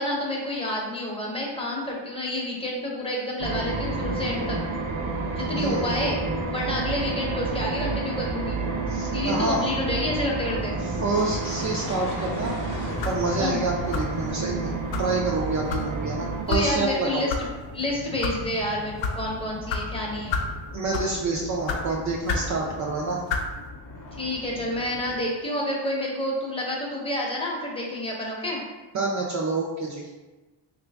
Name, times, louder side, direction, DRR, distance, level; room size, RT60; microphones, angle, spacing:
voice 1, 0.0-4.6 5.3-6.2 6.5-8.6 9.1-10.8 13.4-13.6 16.5-17.5 17.7-20.4 24.2-28.6, left 1 dB, 10° left, -3 dB, 0.7 m, -29 dB
sound 1, 3.4-16.4, right 3 dB, 70° right, 0.8 m, -30 dB
voice 2, 5.5-6.0 8.9-9.7 10.8-14.7 15.0-17.2 20.7-23.2 28.9-30.2, right 3 dB, 40° right, -1 dB, 0.4 m, -28 dB
sound 2, 10.9-25.2, left 2 dB, 40° left, 0.8 m, -40 dB
sound 3, 13.0-13.3 13.9-14.2 14.9-15.1 15.7-15.9 16.5-16.7 17.3-17.4 18.0-18.4 19.0-19.2 19.7-19.8 20.3-20.5 20.9-21.2 21.7-21.8 22.3-22.5 23.3-23.5, left 4 dB, 70° left, 0.6 m, -28 dB
3.0 x 2.5 x 3.4 m, 1.2 s
cardioid pair, 110°, 48 cm